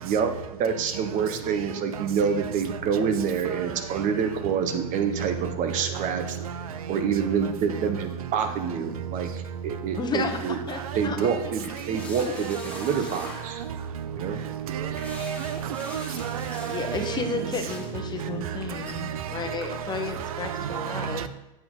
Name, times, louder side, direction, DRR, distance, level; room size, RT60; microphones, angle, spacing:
voice 1, 0.0-6.6 6.9-10.6 10.9-13.6 14.2-14.4, right 6 dB, 45° right, 1.1 m, -27 dB
sound 1, 9.2-19.7, left 1 dB, 5° left, 1.9 m, -46 dB
voice 2, 10.0-11.3 11.9-12.0 12.2-12.3 16.5-21.3, left 5 dB, 25° left, 1.0 m, -33 dB
voice 3, 14.7-17.5 18.2-18.4 19.0-19.1 19.5-19.6 20.5-21.3, right 9 dB, 85° right, 0.6 m, -31 dB
7.6 x 7.6 x 3.8 m
supercardioid pair, 110°, 18 cm